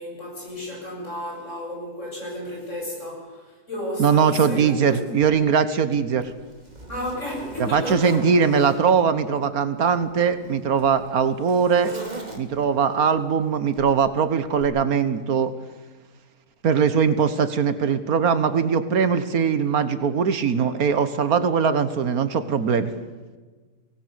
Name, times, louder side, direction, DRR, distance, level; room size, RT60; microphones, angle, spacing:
voice 1, 0.0-5.3 6.9-8.2 12.9-13.2, left 1 dB, 50° left, -2 dB, 7.7 m, -33 dB
voice 2, 4.0-6.3 7.6-11.9 12.4-15.5 16.6-22.9, right 6 dB, 75° right, 12 dB, 1.6 m, -21 dB
Zipper (clothing), 5.2-5.3 5.9-8.9 9.8-12.8 13.8-14.0 14.6-14.7, right 2 dB, 30° right, 2.6 m, -38 dB
23.5 x 18.5 x 7.0 m, 1.3 s
omnidirectional pair, 1.6 m